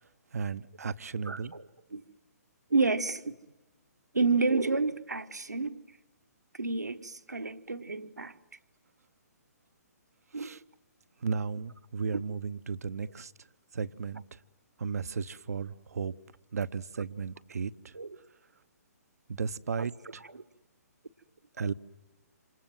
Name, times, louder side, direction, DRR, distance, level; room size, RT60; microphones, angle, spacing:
voice 1, 0.3-1.5 10.4-10.6 11.2-13.3 13.7-14.2 14.8-16.1 16.5-17.7 19.3-19.9 21.6-21.7, right 5 dB, 65° right, 0.9 m, -34 dB
voice 2, 1.2-2.0 2.7-3.3 4.1-5.8 6.5-8.4 10.3-10.5 12.1-12.2 17.9-18.2 19.8-20.4, right 3 dB, 85° right, 1.4 m, -30 dB
28.0 x 27.5 x 7.7 m
figure-of-eight pair, 130°, 9 cm